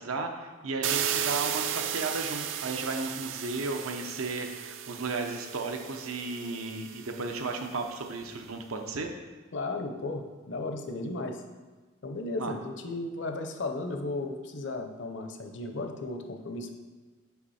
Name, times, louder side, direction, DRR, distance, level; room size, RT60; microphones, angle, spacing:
voice 1, 0.0-9.1 12.4-12.5, right 3 dB, 90° right, 4 dB, 0.8 m, -34 dB
sound 1, 0.8-7.7, right 9 dB, 70° right, 0.4 m, -35 dB
voice 2, 9.5-11.4 12.0-16.7, left 2 dB, 60° left, 5 dB, 0.7 m, -35 dB
5.9 x 5.2 x 4.2 m, 1.3 s
head